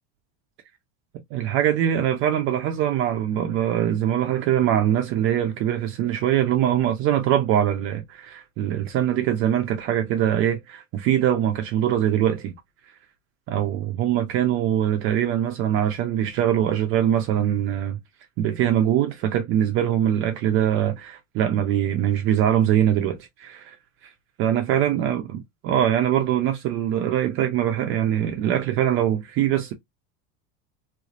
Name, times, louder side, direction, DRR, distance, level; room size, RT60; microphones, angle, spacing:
voice 1, 1.3-12.6 13.5-18.0 18.4-23.8 24.4-29.7, right 10 dB, 35° right, 0.5 m, -22 dB
3.3 x 3.2 x 2.5 m
supercardioid pair, 160°, 37 cm